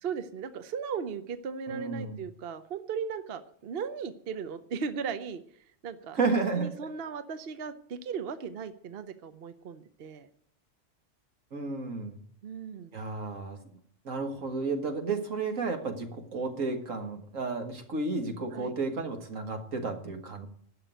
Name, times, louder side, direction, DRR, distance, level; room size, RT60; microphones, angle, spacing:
voice 1, 0.0-6.2 6.6-10.3 12.4-13.0 18.5-18.7, right 6 dB, 55° right, 11 dB, 0.9 m, -37 dB
voice 2, 1.7-2.2 6.1-6.7 11.5-12.2 12.9-13.6 14.0-20.5, right 3 dB, 85° right, 5 dB, 2.1 m, -32 dB
12.0 x 6.8 x 9.1 m, 0.62 s
omnidirectional pair, 1.3 m